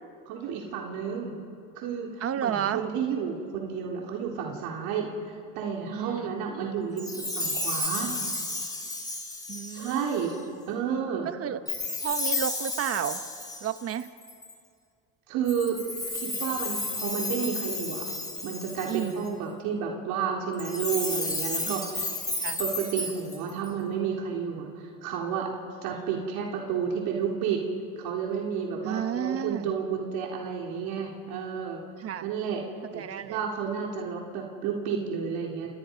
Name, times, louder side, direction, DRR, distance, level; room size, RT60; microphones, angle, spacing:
voice 1, 0.3-1.4 1.7-2.1 2.4-5.1 5.6-8.2 9.7-10.4 10.7-11.3 15.3-15.8 16.1-18.1 18.4-22.1 22.6-25.5 25.8-27.7 28.0-31.8 32.2-32.6 32.9-35.7, right 7 dB, 75° right, -1 dB, 3.7 m, -31 dB
voice 2, 2.2-2.8 5.9-6.3 6.6-6.7 9.5-10.6 11.2-11.6 12.0-13.2 13.6-14.1 18.9-19.2 21.6-21.9 22.4-22.6 25.9-26.0 28.8-29.7 32.0-32.3 32.9-33.4, right 9 dB, 40° right, 10 dB, 1.2 m, -32 dB
Chime, 7.0-10.3 11.7-14.5 15.5-19.3 20.5-23.7, left 2 dB, 10° left, 3.5 m, -32 dB
30.0 x 29.0 x 5.3 m, 2.3 s
cardioid pair, 125°, 36 cm